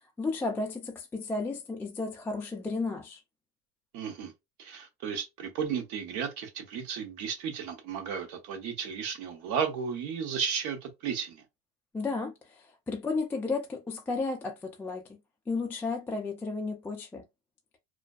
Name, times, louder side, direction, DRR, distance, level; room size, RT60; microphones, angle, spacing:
voice 1, 0.2-3.2 11.9-15.0 15.5-17.2, left 3 dB, 5° left, 0.3 m, -33 dB
voice 2, 3.9-4.3 4.6-11.4, right 7 dB, 60° right, 1.0 m, -34 dB
2.4 x 2.2 x 2.3 m
supercardioid pair, 110°, 32 cm